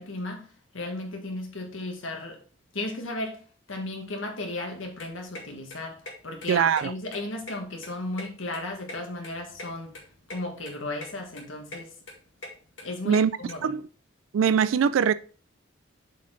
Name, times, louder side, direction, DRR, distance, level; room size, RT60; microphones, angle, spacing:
voice 1, 0.0-2.4 2.7-3.4 3.7-10.0 10.3-11.9 12.8-13.7, left 2 dB, 80° left, 1.7 m, -35 dB
sound 1, 4.8-13.5, left 1 dB, 65° left, 1.9 m, -43 dB
voice 2, 6.5-6.9 13.1-13.3 13.6-13.8 14.3-15.1, right 7 dB, 80° right, 0.3 m, -22 dB
7.2 x 4.4 x 3.9 m
head